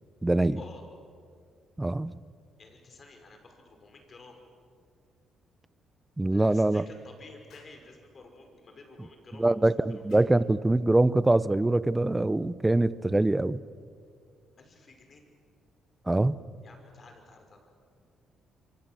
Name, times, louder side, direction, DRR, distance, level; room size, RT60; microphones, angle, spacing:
voice 1, 0.2-0.6 1.8-2.1 6.2-6.8 9.4-13.6 16.1-16.4, right 2 dB, 15° right, 17 dB, 0.7 m, -24 dB
voice 2, 2.6-4.4 6.3-9.5 9.9-10.0 14.6-15.3 16.6-17.7, left 3 dB, 45° left, 5 dB, 5.7 m, -52 dB
Explosion, 7.5-7.8 10.1-10.4, left 6 dB, 75° left, 4.2 m, -58 dB
27.5 x 23.5 x 7.8 m, 2.1 s
cardioid pair, 90°, 0 cm